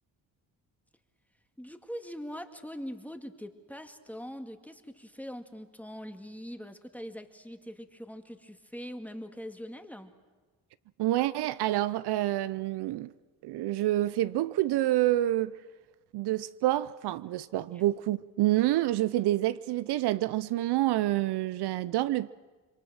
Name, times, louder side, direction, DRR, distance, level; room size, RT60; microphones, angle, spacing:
voice 1, 1.6-10.1 17.7-17.8, equal, 5° left, 2.0 m, -42 dB
voice 2, 11.0-13.1 13.4-15.6 16.1-22.3, right 15 dB, 75° right, 0.6 m, -28 dB
27.0 x 23.0 x 6.3 m
supercardioid pair, 55°, 40 cm